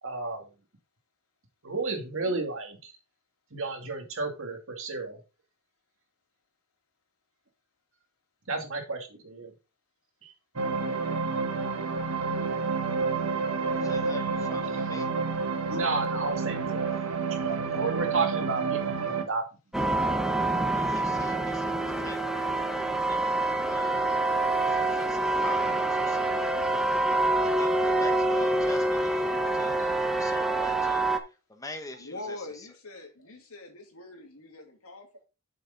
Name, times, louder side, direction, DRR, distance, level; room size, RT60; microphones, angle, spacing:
voice 1, 0.0-0.5 1.6-2.9 3.5-5.2 8.5-9.5 10.2-10.3 15.7-16.9 17.3-19.5 29.8-29.9, right 3 dB, 65° right, 4 dB, 2.2 m, -32 dB
sound 1, 10.6-19.2, right 4 dB, 85° right, 1.5 m, -29 dB
voice 2, 13.7-15.1 16.9-17.1 17.4-17.8 20.7-24.0 24.6-26.6 27.4-31.1 31.5-32.7, left 2 dB, 15° left, 6 dB, 1.3 m, -45 dB
sound 2, 19.7-31.2, right 2 dB, ahead, 1.0 m, -26 dB
voice 3, 32.0-35.2, left 2 dB, 80° left, 3 dB, 2.5 m, -43 dB
7.1 x 6.9 x 3.9 m, 0.30 s
head